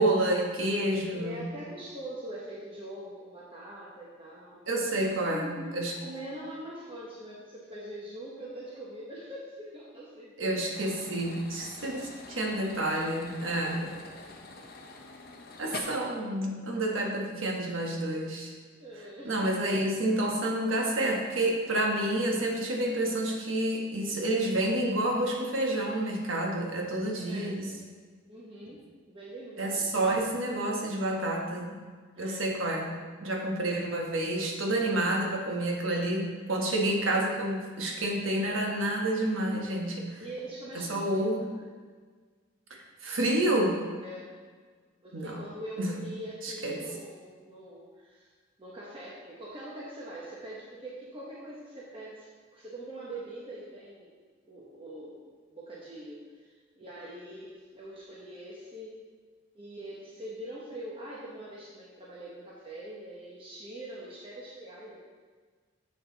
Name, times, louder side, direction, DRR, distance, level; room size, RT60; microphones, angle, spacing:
voice 1, 0.0-1.5 4.7-5.9 10.4-13.8 15.6-18.5 19.2-27.7 29.6-31.8 32.2-40.2 40.7-41.5 42.7-43.8 45.1-45.4 45.8-45.9 46.4-46.8, right 1 dB, 85° right, 0 dB, 1.3 m, -29 dB
voice 2, 1.1-4.6 5.0-10.7 13.6-14.3 15.7-16.0 18.8-19.3 27.1-27.8 28.3-29.9 32.1-32.5 40.2-41.7 44.0-44.3 45.0-48.3 48.6-54.1 54.5-55.2 55.5-59.0 59.5-65.0, right 1 dB, 25° right, -6 dB, 1.0 m, -43 dB
sound 1, 10.7-15.8, left 4 dB, 50° left, 0.8 m, -46 dB
7.3 x 6.6 x 4.0 m, 1.5 s
head